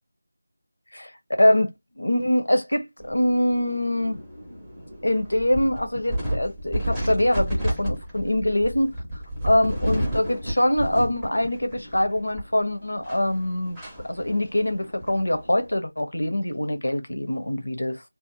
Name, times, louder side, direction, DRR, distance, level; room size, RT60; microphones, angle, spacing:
voice 1, 1.4-4.2 5.0-8.9 9.4-13.8 14.1-18.0, left 1 dB, 85° left, 0.8 m, -24 dB
sound 1, 3.0-15.8, equal, 5° right, 0.7 m, -32 dB
2.8 x 2.1 x 2.5 m
figure-of-eight pair, 170°, 0 cm